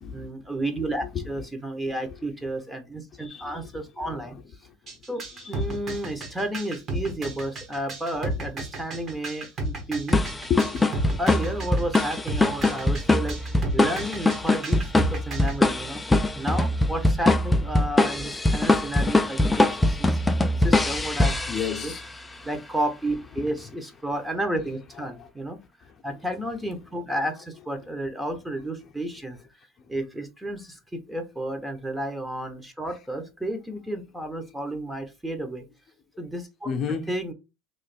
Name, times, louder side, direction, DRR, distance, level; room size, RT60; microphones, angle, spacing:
voice 1, 0.1-4.4 5.1-5.2 5.5-10.2 11.2-16.0 16.3-21.3 21.8-21.9 22.4-25.6 26.0-29.4 29.9-35.6 36.2-36.7 37.1-37.3, right 1 dB, 5° right, 0.9 m, -32 dB
voice 2, 3.1-4.3 5.3-5.8 8.3-8.4 10.5-10.9 21.5-22.1 23.6-23.7 25.0-25.3 36.6-37.1, left 7 dB, 40° left, 0.7 m, -32 dB
sound 1, 4.9-15.6, right 2 dB, 40° right, 1.4 m, -33 dB
sound 2, 10.1-22.1, left 2 dB, 10° left, 0.4 m, -23 dB
3.1 x 2.5 x 4.1 m
supercardioid pair, 95°, 0 cm